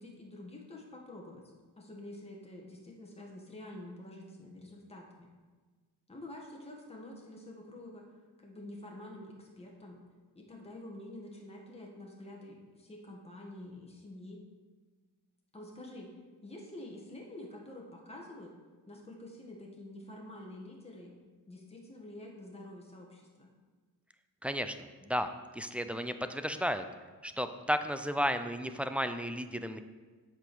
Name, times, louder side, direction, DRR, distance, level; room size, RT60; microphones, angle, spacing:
voice 1, 0.0-1.4 1.8-5.3 6.1-8.1 8.4-10.0 10.3-14.4 15.5-16.1 16.4-18.5 18.9-21.1 21.5-23.5, left 1 dB, 15° left, -1 dB, 1.6 m, -48 dB
voice 2, 24.4-24.8 25.0-25.3 25.5-26.8 27.2-29.8, equal, 5° right, 9 dB, 0.4 m, -33 dB
8.2 x 5.1 x 6.1 m, 1.4 s
cardioid pair, 85°, 40 cm